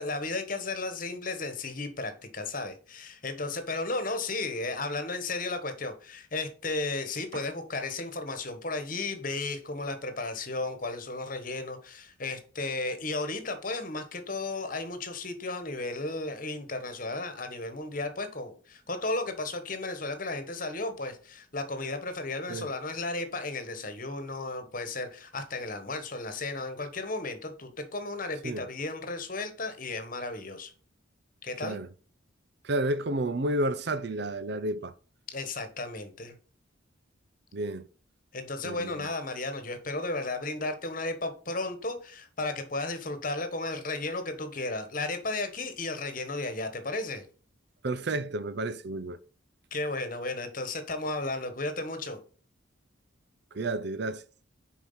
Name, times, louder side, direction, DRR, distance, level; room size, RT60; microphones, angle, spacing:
voice 1, 0.0-30.7 31.4-31.8 35.3-36.3 38.3-47.2 49.7-52.2, left 2 dB, 40° left, 1.3 m, -34 dB
voice 2, 32.6-34.9 37.5-37.8 38.6-39.1 47.8-49.2 53.5-54.2, right 1 dB, 55° right, 0.6 m, -31 dB
7.2 x 4.7 x 5.5 m
head